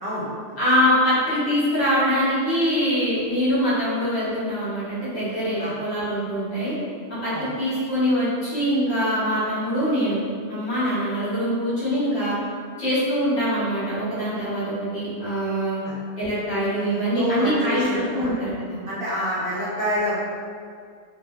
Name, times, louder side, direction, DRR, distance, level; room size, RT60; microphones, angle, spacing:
voice 1, 0.0-0.6 5.6-5.7 7.3-7.5 15.8-15.9 16.8-18.3 18.9-20.2, equal, 55° right, -9 dB, 0.7 m, -28 dB
voice 2, 0.6-6.7 7.2-10.2 10.5-12.4 12.8-15.8 16.2-18.8, equal, 60° left, -10 dB, 1.2 m, -23 dB
3.0 x 2.2 x 2.2 m, 2.1 s
omnidirectional pair, 1.3 m